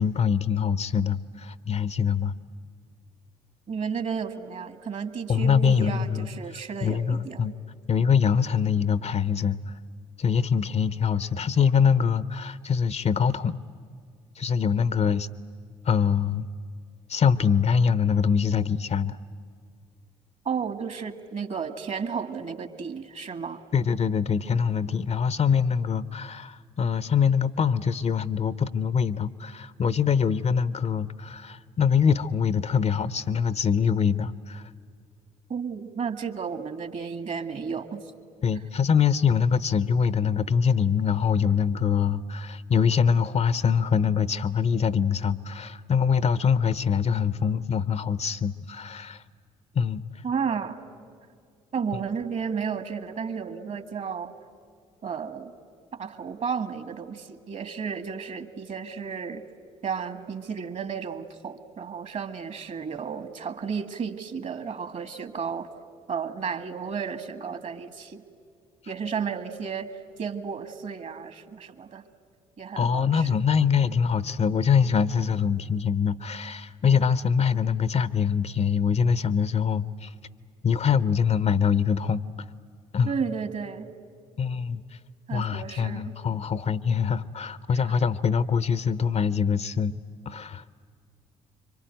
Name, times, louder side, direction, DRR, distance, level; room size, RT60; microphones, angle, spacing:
voice 1, 0.0-2.3 5.3-6.3 6.8-7.5 7.9-9.7 10.2-13.6 14.4-15.3 15.9-16.5 17.1-19.2 23.7-34.6 38.4-49.2 49.7-50.0 72.8-80.1 80.6-82.2 82.9-83.1 84.4-84.8 85.3-89.9 90.3-90.6, left 6 dB, 40° left, 17 dB, 0.8 m, -24 dB
voice 2, 3.7-7.5 20.5-23.6 35.5-38.0 50.2-50.8 51.7-54.3 55.0-55.5 56.0-59.5 59.8-65.7 66.1-68.2 68.9-69.9 70.2-72.0 72.6-73.4 83.1-83.9 85.3-86.2, right 6 dB, 50° right, 10 dB, 1.9 m, -33 dB
26.0 x 24.0 x 9.2 m, 2.2 s
hypercardioid pair, 45°, 16 cm